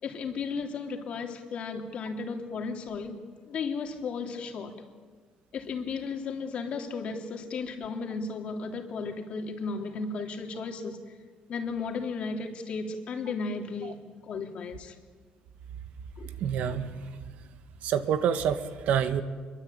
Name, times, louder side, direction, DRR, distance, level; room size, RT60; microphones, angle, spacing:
voice 1, 0.0-3.2 3.5-4.7 5.5-11.0 11.5-14.9 16.2-16.3, left 4 dB, 50° left, 4 dB, 3.3 m, -34 dB
voice 2, 16.3-17.5 17.8-19.2, right 8 dB, 70° right, 9 dB, 1.8 m, -28 dB
26.5 x 23.0 x 9.0 m, 1.5 s
cardioid pair, 140°, 3 cm